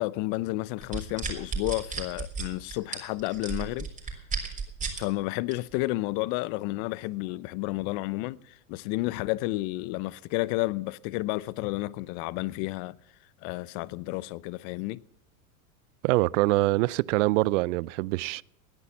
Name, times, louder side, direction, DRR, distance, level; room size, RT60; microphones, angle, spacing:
voice 1, 0.0-3.9 5.0-12.9 13.4-15.0, left 19 dB, 50° left, 0.7 m, -31 dB
sound 1, 0.8-5.0 5.5-5.8, right 4 dB, 15° right, 3.7 m, -33 dB
voice 2, 16.0-18.4, right 21 dB, 60° right, 0.5 m, -24 dB
18.0 x 10.0 x 7.2 m
hypercardioid pair, 115°, 42 cm